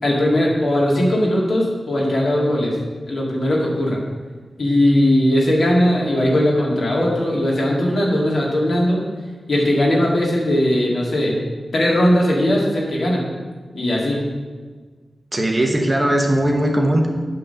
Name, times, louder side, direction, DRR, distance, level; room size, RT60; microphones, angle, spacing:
voice 1, 0.0-2.8 3.1-4.0 4.6-9.0 9.5-11.4 11.7-13.3 13.7-14.2, left 1 dB, 65° left, -3 dB, 1.9 m, -18 dB
voice 2, 15.3-17.1, right 1 dB, 25° right, 1 dB, 0.9 m, -18 dB
8.5 x 3.7 x 6.6 m, 1.4 s
wide cardioid pair, 125°, 0 cm